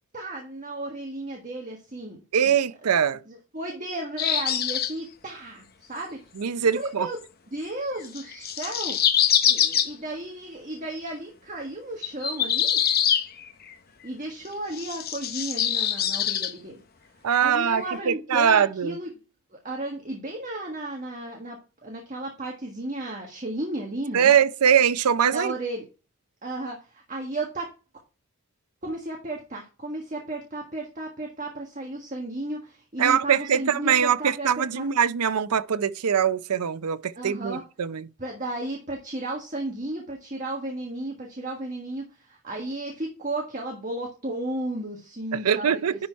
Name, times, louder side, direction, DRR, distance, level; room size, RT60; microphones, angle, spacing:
voice 1, 0.1-2.5 3.3-6.2 6.7-7.2 7.5-9.0 9.4-12.8 14.0-16.8 17.4-19.1 19.5-24.3 25.3-25.8 26.4-26.8 27.1-27.7 28.8-34.8 37.1-37.6 38.2-46.1, right 1 dB, 35° right, 1.5 m, -34 dB
voice 2, 2.3-3.2 6.4-7.1 17.2-19.0 24.1-25.5 33.0-38.1 45.3-46.1, right 8 dB, 90° right, 0.5 m, -22 dB
sound 1, 4.2-4.9 8.0-9.9 12.0-13.7 14.7-16.5 17.3-17.5 17.7-17.8, left 9 dB, 40° left, 0.8 m, -24 dB
11.0 x 4.2 x 4.5 m
head